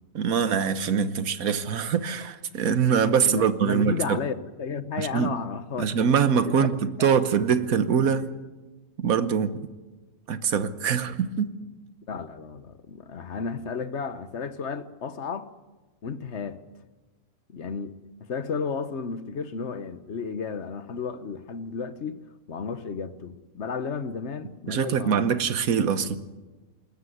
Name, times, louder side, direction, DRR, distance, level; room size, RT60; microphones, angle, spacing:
voice 1, 0.1-4.2 5.0-5.3 5.8-8.3 9.0-9.5 10.3-11.5 24.7-26.2, right 7 dB, 90° right, 1.5 m, -23 dB
voice 2, 3.2-4.3 4.6-6.7 12.1-15.5 16.0-16.6 17.5-22.2 22.5-25.3, left 5 dB, 55° left, 1.3 m, -33 dB
21.0 x 20.5 x 8.1 m
omnidirectional pair, 1.4 m